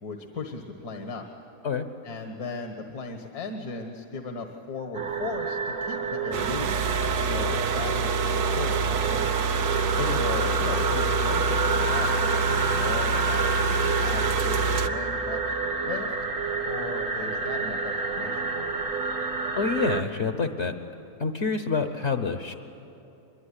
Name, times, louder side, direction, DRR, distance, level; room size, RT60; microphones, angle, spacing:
voice 1, 0.0-1.2 2.0-6.9 7.2-9.4 10.1-16.2 16.6-18.8, left 4 dB, 70° left, 4 dB, 1.9 m, -37 dB
sound 1, 4.9-20.0, right 4 dB, 35° right, 1.2 m, -29 dB
sound 2, 6.3-14.9, right 4 dB, 75° right, 1.4 m, -26 dB
voice 2, 19.6-20.7 21.2-22.5, left 5 dB, 50° left, 8 dB, 1.2 m, -27 dB
23.5 x 22.5 x 10.0 m, 2.8 s
omnidirectional pair, 1.7 m